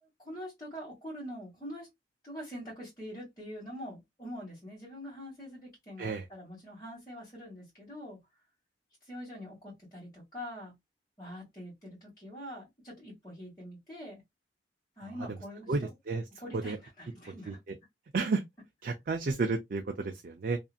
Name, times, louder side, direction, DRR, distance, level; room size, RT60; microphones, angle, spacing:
voice 1, 0.0-1.9 2.2-8.2 9.1-10.7 11.2-14.2 15.0-15.9 16.4-17.6, equal, 20° left, 1.4 m, -44 dB
voice 2, 15.7-16.2 16.5-16.8 17.5-17.8 18.1-18.4 18.8-20.6, right 3 dB, 50° right, 0.4 m, -32 dB
2.7 x 2.5 x 2.3 m
head